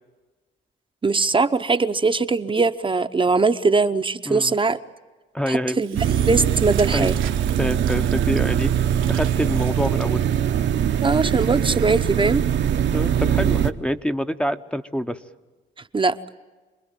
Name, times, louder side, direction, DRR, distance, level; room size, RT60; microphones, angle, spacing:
voice 1, 1.0-4.8 5.5-7.2 11.0-12.4 15.9-16.2, right 4 dB, 25° right, 9 dB, 0.8 m, -21 dB
voice 2, 5.3-5.8 6.9-7.1 7.6-8.7 9.1-10.2 12.9-15.2, equal, 5° left, 6 dB, 0.8 m, -26 dB
Engine / Drill, 5.8-10.3, right 10 dB, 80° right, 1.4 m, -38 dB
sound 1, 6.0-13.7, right 9 dB, 65° right, 1.0 m, -22 dB
27.5 x 20.5 x 9.1 m, 1.3 s
cardioid pair, 90°, 20 cm